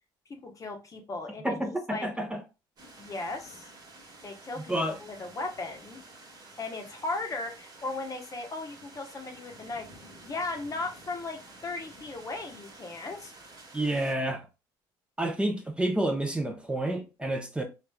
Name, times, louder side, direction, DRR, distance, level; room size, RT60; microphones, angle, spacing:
voice 1, 0.3-1.5 1.9-2.1 3.0-3.7 4.2-6.0 6.6-9.9 10.2-13.3, left 3 dB, 35° left, 0.8 m, -37 dB
voice 2, 1.4-2.4 4.7-5.0 13.7-14.5 15.2-17.6, right 1 dB, 10° right, 0.6 m, -29 dB
sound 1, 2.8-14.1, right 2 dB, 45° right, 1.3 m, -51 dB
3.1 x 2.4 x 2.2 m
supercardioid pair, 75°, 10 cm